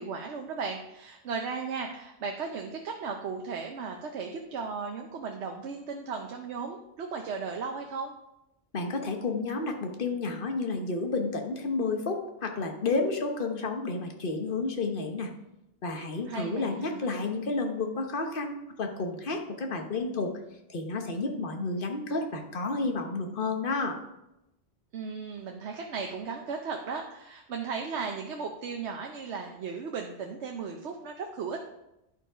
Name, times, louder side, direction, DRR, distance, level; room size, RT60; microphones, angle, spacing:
voice 1, 0.0-8.1 16.3-17.1 24.9-31.6, right 5 dB, 85° right, 3 dB, 1.0 m, -36 dB
voice 2, 8.7-15.3 15.8-20.3 20.7-24.0, left 3 dB, 55° left, 4 dB, 1.2 m, -31 dB
10.5 x 4.6 x 4.9 m, 0.90 s
omnidirectional pair, 1.1 m